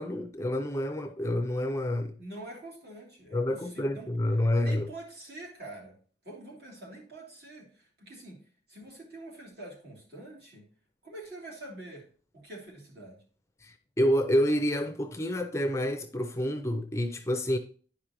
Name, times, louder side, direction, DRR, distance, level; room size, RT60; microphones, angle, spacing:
voice 1, 0.0-2.2 3.3-4.9 13.6-17.6, left 1 dB, 15° left, 0.4 m, -28 dB
voice 2, 2.2-4.1 4.5-5.9 6.2-8.4 8.7-10.7 11.0-12.1 12.3-13.2, right 1 dB, 60° right, 2.9 m, -45 dB
10.5 x 5.0 x 3.0 m
head